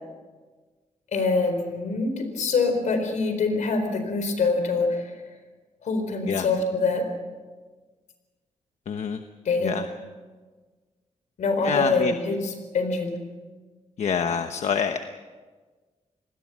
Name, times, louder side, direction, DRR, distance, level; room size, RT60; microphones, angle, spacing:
voice 1, 1.1-5.2 5.8-7.1 9.4-9.7 11.4-13.2, left 3 dB, 85° left, 7 dB, 4.4 m, -25 dB
voice 2, 8.9-9.2 9.6-9.9 11.6-12.1 14.0-15.0, left 6 dB, 65° left, 7 dB, 1.0 m, -26 dB
27.5 x 20.0 x 6.2 m, 1.4 s
wide cardioid pair, 155°, 12 cm